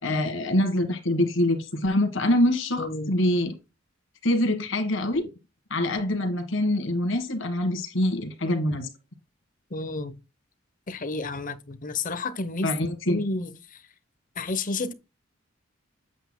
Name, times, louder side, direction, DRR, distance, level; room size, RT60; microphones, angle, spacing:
voice 1, 0.0-3.5 4.2-5.3 5.7-8.9 12.6-13.2, left 1 dB, 70° left, 1.7 m, -25 dB
voice 2, 2.8-3.1 9.7-10.1 10.9-12.7 13.1-13.5 14.4-14.9, left 3 dB, 40° left, 0.8 m, -30 dB
8.1 x 7.9 x 2.2 m
head